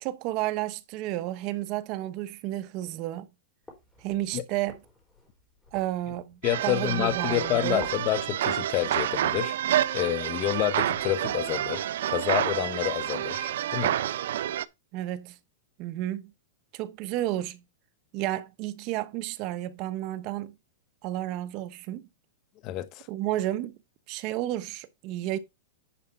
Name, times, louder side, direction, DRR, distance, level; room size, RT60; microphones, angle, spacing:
voice 1, 0.0-3.3 4.0-4.8 5.7-7.9 14.9-15.4 15.8-16.3 16.7-17.6 18.1-20.5 21.0-22.1 23.1-23.7 24.1-25.4, right 14 dB, 40° right, 0.9 m, -32 dB
sound 1, 3.6-12.1, left 1 dB, 5° left, 4.0 m, -52 dB
voice 2, 6.4-9.6 9.9-14.0 22.6-23.1, left 14 dB, 35° left, 1.0 m, -28 dB
sound 2, 6.4-14.7, right 11 dB, 75° right, 0.5 m, -29 dB
10.5 x 5.0 x 4.4 m
supercardioid pair, 150°, 0 cm